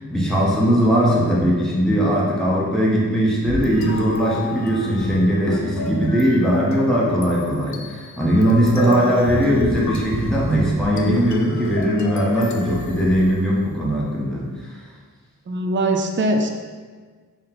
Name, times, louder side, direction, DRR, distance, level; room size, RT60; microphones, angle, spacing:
voice 1, 0.0-14.8, equal, ahead, -5 dB, 0.7 m, -19 dB
sound 1, 3.5-13.8, left 4 dB, 55° left, 0.4 m, -31 dB
voice 2, 8.8-9.1 15.5-16.5, right 2 dB, 35° right, 3 dB, 0.4 m, -21 dB
3.9 x 2.1 x 4.1 m, 1.5 s
wide cardioid pair, 55°, 35 cm